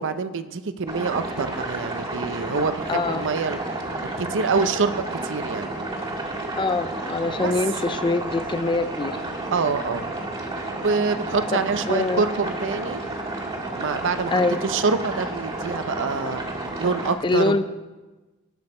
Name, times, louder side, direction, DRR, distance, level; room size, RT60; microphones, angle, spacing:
voice 1, 0.0-3.6 4.0-5.8 7.4-7.5 9.5-10.1 10.8-13.0 13.8-14.3 14.6-16.4 16.8-17.6, right 4 dB, 60° right, 11 dB, 0.6 m, -26 dB
sound 1, 0.9-17.1, right 2 dB, 25° right, 1.8 m, -31 dB
voice 2, 2.9-3.2 6.6-9.2 11.5-11.6 11.9-12.2 14.3-14.6 17.2-17.6, left 3 dB, 20° left, 10 dB, 0.4 m, -23 dB
18.5 x 6.3 x 4.3 m, 1.2 s
head